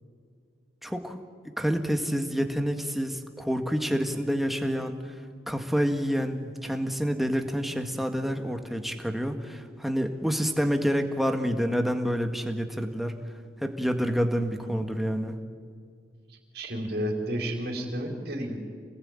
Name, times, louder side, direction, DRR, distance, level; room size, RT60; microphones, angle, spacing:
voice 1, 0.8-1.2 1.6-5.1 5.5-13.1 13.6-15.4, equal, ahead, 5 dB, 1.8 m, -28 dB
voice 2, 16.3-18.6, right 1 dB, 60° right, 2 dB, 4.4 m, -32 dB
27.5 x 19.5 x 9.0 m, 2.1 s
head